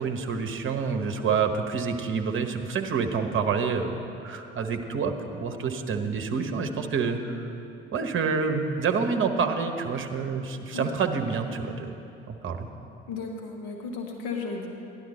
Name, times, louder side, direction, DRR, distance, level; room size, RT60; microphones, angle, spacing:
voice 1, 0.0-3.9 4.2-7.5 7.9-11.9 12.3-12.7, right 5 dB, 35° right, 5 dB, 1.1 m, -28 dB
voice 2, 13.1-14.7, left 4 dB, 65° left, 1 dB, 1.7 m, -34 dB
13.0 x 11.0 x 4.3 m, 2.8 s
figure-of-eight pair, 55°, 33 cm